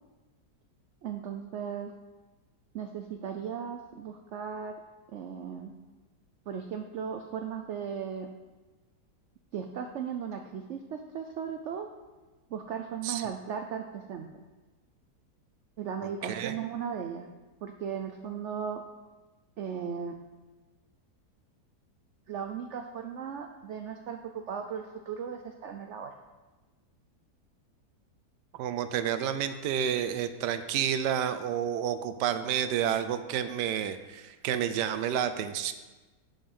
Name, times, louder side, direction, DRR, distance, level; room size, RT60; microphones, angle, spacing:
voice 1, 1.0-1.9 2.7-4.8 5.1-5.7 6.5-8.3 9.5-11.9 12.5-14.3 15.8-17.3 17.6-18.8 19.6-20.2 22.3-26.2, right 7 dB, 65° right, 5 dB, 0.7 m, -37 dB
voice 2, 16.2-16.5 28.5-35.7, right 9 dB, 80° right, 11 dB, 1.2 m, -30 dB
9.7 x 5.2 x 5.4 m, 1.2 s
omnidirectional pair, 1.8 m